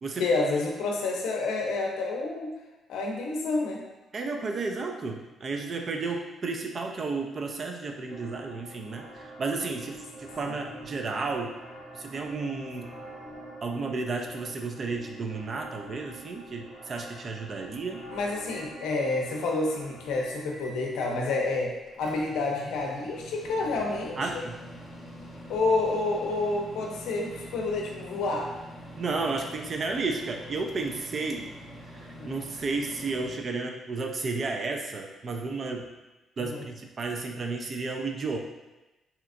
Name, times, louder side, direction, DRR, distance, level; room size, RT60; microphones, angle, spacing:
voice 1, 0.2-2.5 2.9-3.8 18.1-24.4 25.5-28.5 32.1-32.4 36.4-36.6, left 3 dB, 85° left, 0 dB, 0.6 m, -29 dB
voice 2, 4.1-11.5 11.9-12.9 13.6-18.0 24.2-24.6 29.0-31.5 31.9-35.9 36.4-38.4, right 3 dB, 45° right, 3 dB, 0.4 m, -32 dB
sound 1, 8.1-20.2, right 1 dB, 70° right, 1.2 m, -46 dB
Microwave oven, 17.7-18.7 20.1-21.2 21.6-33.4, equal, 25° left, 0.7 m, -45 dB
3.2 x 2.9 x 2.4 m, 1.1 s
cardioid pair, 90°, 0 cm